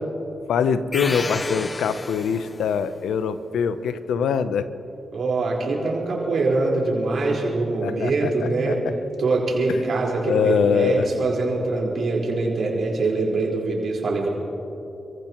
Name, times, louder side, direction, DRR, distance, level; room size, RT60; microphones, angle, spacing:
voice 1, 0.5-4.7 7.8-8.9 9.7-9.8 10.2-11.1, left 7 dB, 90° left, 12 dB, 0.7 m, -23 dB
sound 1, 0.9-2.8, left 3 dB, 30° left, 0.5 m, -32 dB
voice 2, 5.1-8.8 9.2-14.3, right 3 dB, 65° right, -3 dB, 4.5 m, -23 dB
29.0 x 15.0 x 3.1 m, 3.0 s
cardioid pair, 60°, 0 cm